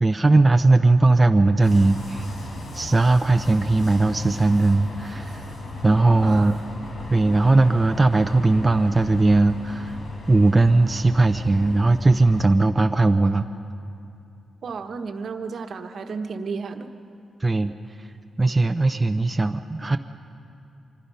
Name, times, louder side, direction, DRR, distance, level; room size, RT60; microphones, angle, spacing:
voice 1, 0.0-2.3 2.7-5.5 5.8-6.5 7.1-10.0 10.3-13.4 17.4-17.7 18.0-18.1 18.4-20.0, right 2 dB, 20° right, 6 dB, 0.5 m, -18 dB
sound 1, 1.6-12.4, left 1 dB, 65° left, 4.7 m, -37 dB
voice 2, 6.2-6.5 14.6-16.9, right 4 dB, 60° right, 6 dB, 1.2 m, -32 dB
25.0 x 22.0 x 5.6 m, 2.7 s
cardioid pair, 110°, 0 cm